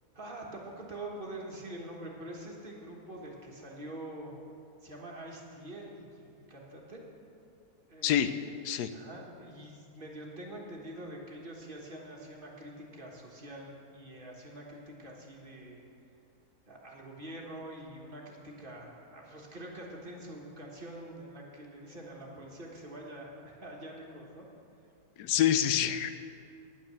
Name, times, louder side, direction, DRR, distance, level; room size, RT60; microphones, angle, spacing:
voice 1, 0.1-4.6 4.8-7.1 7.9-8.2 8.9-15.8 16.7-24.5, right 1 dB, 35° right, -1 dB, 1.5 m, -45 dB
voice 2, 25.2-26.1, left 10 dB, 85° left, 10 dB, 1.1 m, -26 dB
9.6 x 9.1 x 6.7 m, 2.6 s
omnidirectional pair, 1.7 m